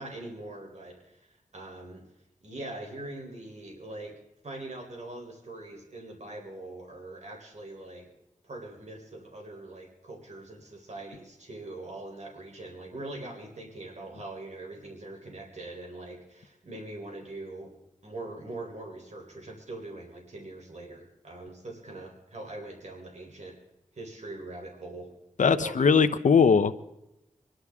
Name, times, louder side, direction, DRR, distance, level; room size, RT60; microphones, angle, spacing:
voice 1, 0.0-2.0 2.4-8.1 8.4-17.7 18.0-23.5 23.9-25.1 25.4-26.0, right 2 dB, 65° right, 0 dB, 3.8 m, -42 dB
voice 2, 25.4-26.7, left 6 dB, 80° left, 10 dB, 0.8 m, -20 dB
25.0 x 11.5 x 3.6 m, 0.86 s
cardioid pair, 40°, 13 cm